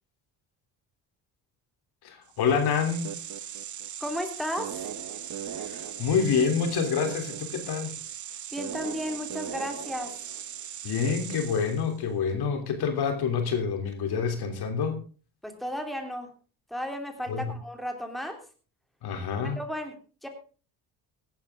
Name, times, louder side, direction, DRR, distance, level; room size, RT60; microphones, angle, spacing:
voice 1, 2.0-3.1 5.7-7.9 10.8-15.0 17.3-17.5 19.0-19.6, left 6 dB, 65° left, 7 dB, 3.2 m, -27 dB
sound 1, 2.3-11.9, right 9 dB, 45° right, 1.2 m, -38 dB
voice 2, 4.0-4.9 8.5-10.1 15.4-16.3 16.7-18.4 19.6-19.9 20.2-20.3, equal, ahead, 4 dB, 3.0 m, -34 dB
16.5 x 12.0 x 3.6 m, 0.37 s
cardioid pair, 90°, 41 cm